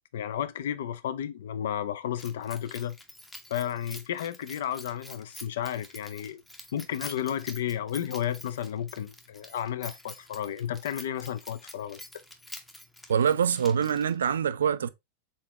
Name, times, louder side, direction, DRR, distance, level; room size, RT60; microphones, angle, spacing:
voice 1, 0.1-3.0 3.5-6.4 6.7-12.0, left 10 dB, 60° left, 0.4 m, -32 dB
Keys jangling, 2.2-14.3, left 1 dB, 5° left, 0.7 m, -48 dB
voice 2, 13.1-14.9, right 7 dB, 65° right, 0.3 m, -24 dB
4.1 x 3.7 x 2.8 m
figure-of-eight pair, 90°, 0 cm